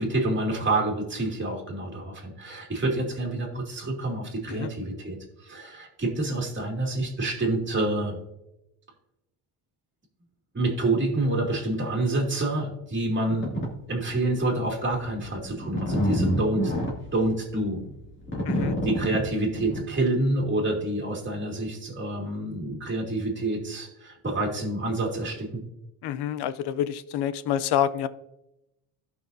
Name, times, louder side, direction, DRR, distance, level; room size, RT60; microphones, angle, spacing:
voice 1, 0.0-8.2 10.5-13.5 13.9-16.7 17.1-17.8 18.6-25.6, right 2 dB, 25° right, -1 dB, 2.6 m, -28 dB
sound 1, 13.3-13.7 14.1-14.4 14.9-19.9, equal, 25° left, 2.4 m, -28 dB
voice 2, 26.0-28.1, left 10 dB, 55° left, 15 dB, 0.7 m, -27 dB
16.5 x 5.8 x 2.7 m, 0.91 s
cardioid pair, 120°, 48 cm